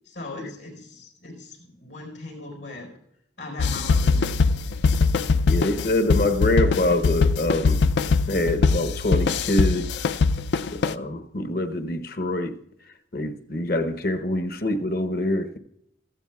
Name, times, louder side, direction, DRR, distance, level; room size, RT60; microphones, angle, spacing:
voice 1, 0.0-2.9 3.4-4.4 4.7-4.9, left 2 dB, 90° left, 4.5 m, -39 dB
sound 1, 3.6-10.9, left 4 dB, 70° left, 0.4 m, -22 dB
voice 2, 5.5-7.9 8.3-10.1 10.7-12.6 13.1-15.6, left 1 dB, 55° left, 0.8 m, -25 dB
16.5 x 14.0 x 2.3 m
head